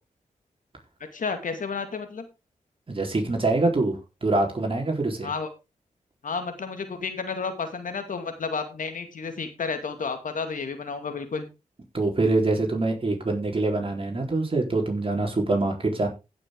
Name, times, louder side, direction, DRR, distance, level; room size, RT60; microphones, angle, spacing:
voice 1, 1.1-2.2 5.2-5.5 6.2-11.5, left 5 dB, 70° left, 2.3 m, -31 dB
voice 2, 2.9-5.3 11.9-16.1, right 2 dB, 40° right, 4.1 m, -25 dB
15.5 x 6.6 x 3.8 m
cardioid pair, 65°, 14 cm